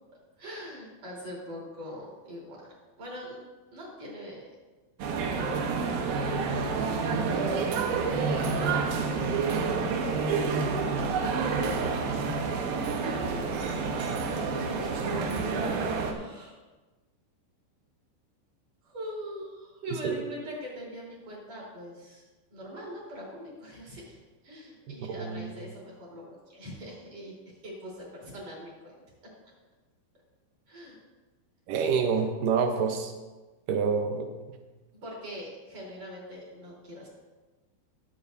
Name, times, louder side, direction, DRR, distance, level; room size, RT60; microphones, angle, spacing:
voice 1, 0.4-2.6 3.0-3.4 3.7-4.5 8.0-10.8 11.0-11.3 13.0-13.9 14.2-16.6 18.8-22.2 22.5-29.0 30.7-31.0 35.0-37.1, equal, 40° right, -4 dB, 4.5 m, -42 dB
sound 1, 5.0-16.1, right 4 dB, 70° right, 2.5 m, -28 dB
voice 2, 25.2-25.5 31.7-33.1 33.7-34.3, right 5 dB, 85° right, 3 dB, 1.9 m, -27 dB
21.0 x 8.5 x 2.7 m, 1.2 s
omnidirectional pair, 5.2 m